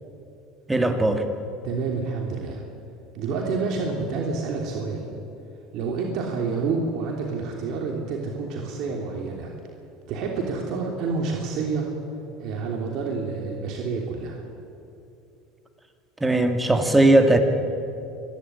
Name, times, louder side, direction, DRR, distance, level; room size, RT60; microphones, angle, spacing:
voice 1, 0.7-1.2 16.2-17.4, right 2 dB, 10° right, 6 dB, 2.3 m, -18 dB
voice 2, 1.6-2.6 3.1-5.1 5.7-9.5 10.1-11.9 12.4-14.5, right 4 dB, 60° right, 0 dB, 3.1 m, -28 dB
26.0 x 11.5 x 9.9 m, 2.7 s
supercardioid pair, 105°, 0 cm